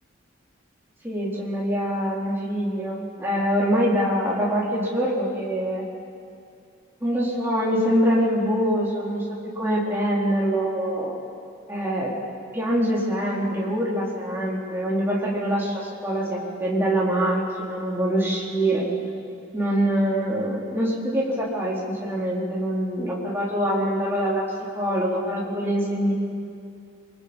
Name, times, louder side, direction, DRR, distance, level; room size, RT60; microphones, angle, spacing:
voice 1, 1.0-5.8 7.0-11.2 11.7-12.1 12.5-18.9 19.5-24.5 24.7-26.1, equal, 10° right, -6 dB, 4.2 m, -24 dB
28.5 x 24.5 x 5.5 m, 2.5 s
head